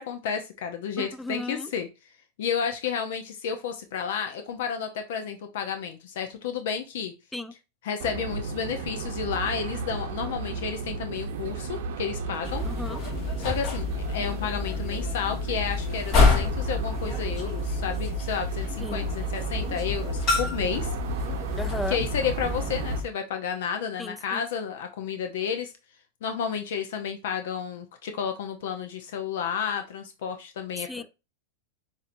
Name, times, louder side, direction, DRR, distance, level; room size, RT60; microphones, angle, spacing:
voice 1, 0.0-1.9 2.4-7.1 7.8-12.7 13.4-20.9 21.9-25.7 26.2-31.0, left 7 dB, 75° left, 0.7 m, -31 dB
voice 2, 1.0-1.7 7.3-7.5 12.6-13.0 18.8-19.0 21.6-22.0 24.0-24.4 30.8-31.0, left 2 dB, 5° left, 0.4 m, -35 dB
sound 1, 8.0-23.0, right 5 dB, 75° right, 0.7 m, -34 dB
sound 2, 12.4-23.0, left 4 dB, 40° left, 1.6 m, -28 dB
7.2 x 2.7 x 2.6 m
supercardioid pair, 135°, 0 cm